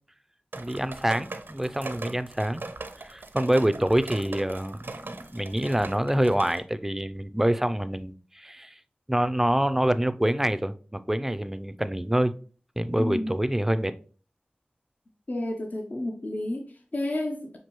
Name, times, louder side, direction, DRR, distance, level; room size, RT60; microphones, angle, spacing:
sound 1, 0.5-6.6, right 3 dB, 75° right, 0.5 m, -39 dB
voice 1, 0.6-2.7 3.0-8.8 9.1-12.3 12.8-13.9, right 1 dB, 10° right, 0.3 m, -26 dB
voice 2, 13.0-13.3 15.3-17.6, left 1 dB, 50° left, 0.5 m, -31 dB
6.0 x 2.6 x 3.0 m
wide cardioid pair, 45°, 4 cm